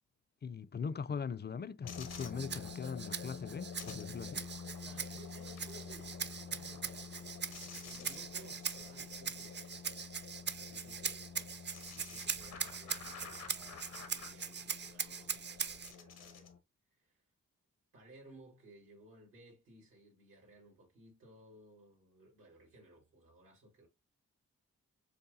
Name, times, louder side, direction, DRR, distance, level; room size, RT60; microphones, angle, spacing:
voice 1, 0.4-4.4, left 6 dB, 30° left, 0.4 m, -41 dB
sound 1, 1.8-16.6, left 6 dB, 90° left, 1.0 m, -48 dB
Rattle (instrument), 2.1-15.9, right 6 dB, 35° right, 0.5 m, -42 dB
voice 2, 4.8-6.2 6.4-7.4 7.8-10.2 10.5-11.4 11.6-16.5 17.0-17.2 17.9-23.9, right 2 dB, 90° right, 2.9 m, -59 dB
6.7 x 2.3 x 2.7 m
supercardioid pair, 45°, 32 cm